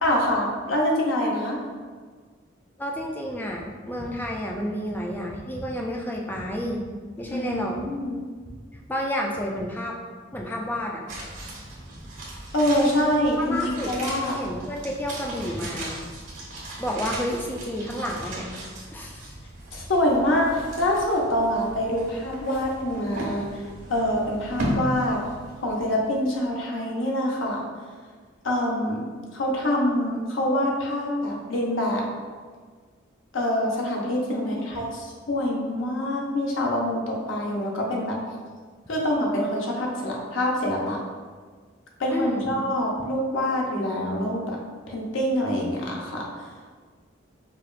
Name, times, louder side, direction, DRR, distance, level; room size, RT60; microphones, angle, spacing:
voice 1, 0.0-1.6 7.3-8.2 12.5-14.4 19.7-23.6 23.9-25.2 25.6-27.6 28.4-29.0 29.3-32.1 33.3-38.2 38.9-41.0 42.0-44.6 44.9-46.3, left 1 dB, 70° left, -2 dB, 0.7 m, -25 dB
voice 2, 2.8-6.9 7.2-7.8 8.7-10.0 10.3-11.0 13.4-14.0 14.3-16.0 16.8-18.5 18.9-19.4 34.3-34.7 42.1-42.5, equal, 10° left, -1 dB, 0.3 m, -30 dB
sound 1, 11.1-26.3 26.5-26.6, right 1 dB, 85° right, 1.1 m, -36 dB
5.0 x 2.3 x 2.3 m, 1.6 s
head